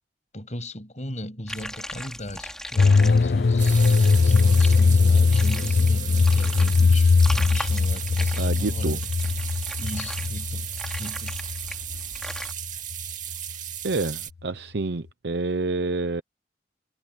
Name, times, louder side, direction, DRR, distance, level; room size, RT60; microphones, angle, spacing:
voice 1, 0.3-9.1 9.8-10.7 11.0-11.4, left 1 dB, 40° left, 8.0 m, -37 dB
sound 1, 1.5-12.5, left 1 dB, 5° left, 6.0 m, -39 dB
sound 2, 2.8-12.6 12.9-13.0, left 4 dB, 60° left, 0.5 m, -20 dB
sound 3, 3.6-14.3, right 11 dB, 45° right, 2.2 m, -35 dB
voice 2, 8.4-9.0 13.8-16.2, right 3 dB, 70° right, 0.8 m, -28 dB
head